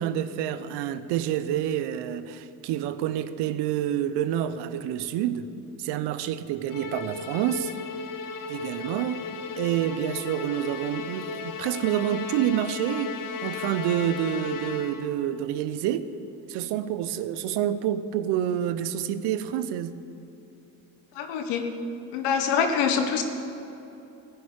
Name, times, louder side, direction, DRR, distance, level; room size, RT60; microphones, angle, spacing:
voice 1, 0.0-5.5 5.8-7.7 8.5-9.2 9.6-13.1 13.4-16.1 16.5-20.0, right 10 dB, 75° right, 13 dB, 0.8 m, -28 dB
Musical instrument, 6.7-15.2, left 5 dB, 50° left, 1.2 m, -36 dB
voice 2, 21.2-21.7 22.1-23.2, left 6 dB, 80° left, 5 dB, 1.5 m, -25 dB
15.0 x 6.8 x 9.8 m, 2.9 s
supercardioid pair, 60°, 41 cm